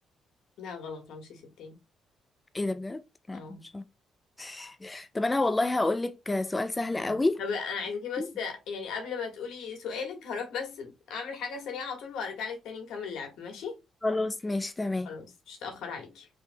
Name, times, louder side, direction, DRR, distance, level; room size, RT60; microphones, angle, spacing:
voice 1, 0.6-1.8 3.3-3.7 7.0-13.8 15.0-16.3, left 5 dB, 80° left, 1.5 m, -37 dB
voice 2, 2.5-3.0 3.3-3.8 4.4-7.4 8.2-8.3 14.0-15.1, left 2 dB, 20° left, 0.4 m, -29 dB
5.6 x 3.5 x 2.2 m
cardioid pair, 90°, 0 cm